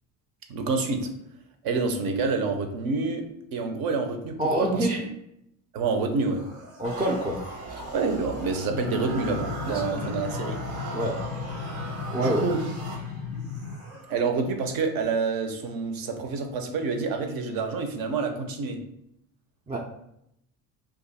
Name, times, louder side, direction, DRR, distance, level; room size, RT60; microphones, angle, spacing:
voice 1, 0.5-1.1 1.6-4.7 5.7-6.4 7.9-10.5 12.2-12.6 14.1-18.8, right 4 dB, 55° right, 5 dB, 0.7 m, -28 dB
voice 2, 4.4-5.0 6.8-7.4 7.7-7.8 9.7-10.1 10.9-11.2 12.1-12.4 19.7-19.8, right 1 dB, 15° right, -1 dB, 0.4 m, -26 dB
sound 1, 6.1-8.6 9.1-11.7 13.3-14.1, left 1 dB, 90° right, 1.3 m, -46 dB
sound 2, 6.8-13.5, right 3 dB, 75° right, 1.0 m, -38 dB
sound 3, 8.7-13.8, left 6 dB, 40° left, 0.4 m, -35 dB
2.5 x 2.5 x 4.1 m, 0.78 s
supercardioid pair, 80°, 42 cm